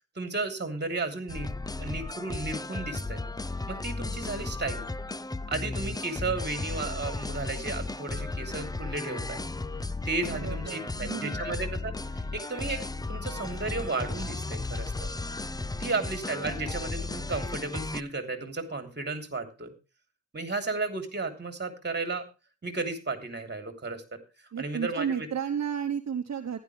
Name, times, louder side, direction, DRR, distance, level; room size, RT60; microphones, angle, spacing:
voice 1, 0.1-1.5 1.8-3.2 3.7-4.8 5.5-9.4 10.0-11.9 12.3-12.8 13.1-15.1 15.8-19.7 20.3-22.2 22.6-24.2 24.6-25.3, right 3 dB, 35° right, 6 dB, 3.2 m, -33 dB
sound 1, 1.3-18.0, left 3 dB, 15° left, 0.5 m, -35 dB
voice 2, 10.3-11.7 15.7-16.1 24.5-26.6, right 7 dB, 65° right, 6 dB, 1.0 m, -33 dB
15.0 x 11.5 x 3.3 m, 0.30 s
wide cardioid pair, 95°, 29 cm